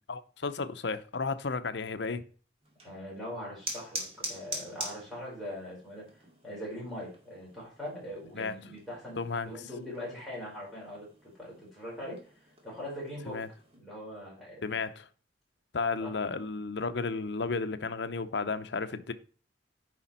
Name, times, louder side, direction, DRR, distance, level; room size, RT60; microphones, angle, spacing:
voice 1, 0.1-2.2 8.4-8.5 9.2-9.6 13.3-13.5 14.6-15.1 15.7-19.1, left 4 dB, 65° left, 0.7 m, -33 dB
sound 1, 2.6-13.8, right 1 dB, 30° right, 2.1 m, -45 dB
voice 2, 2.8-6.1 6.4-9.2 9.5-11.1 11.4-12.3 12.6-13.4 13.8-14.7 16.0-16.2, left 1 dB, ahead, 4.6 m, -41 dB
9.4 x 5.0 x 4.3 m
head